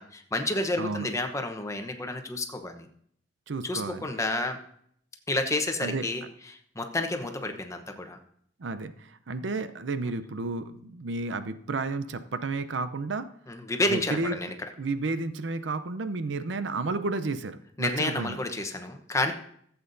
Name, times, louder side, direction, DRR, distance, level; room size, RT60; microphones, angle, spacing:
voice 1, 0.0-2.9 3.6-4.6 5.3-6.2 6.8-8.2 13.5-14.5 17.8-19.3, left 2 dB, 15° left, 6 dB, 0.9 m, -30 dB
voice 2, 0.8-1.1 3.5-4.1 5.8-6.1 8.6-13.3 13.9-14.4 14.8-18.4, right 3 dB, 85° right, 11 dB, 0.6 m, -32 dB
15.0 x 8.0 x 2.7 m, 0.65 s
head